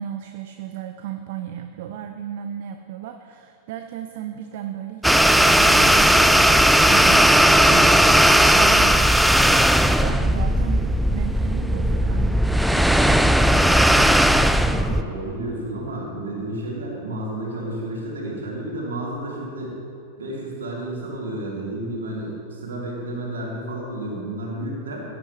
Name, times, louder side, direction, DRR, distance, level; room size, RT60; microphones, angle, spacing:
voice 1, 0.0-12.4, right 10 dB, 50° right, 7 dB, 0.6 m, -35 dB
sound 1, 5.0-15.0, equal, ahead, 0.3 m, -16 dB
voice 2, 14.3-19.7 20.2-25.0, right 1 dB, 65° right, -3 dB, 2.9 m, -31 dB
16.5 x 9.8 x 3.2 m, 2.7 s
figure-of-eight pair, 90°, 0 cm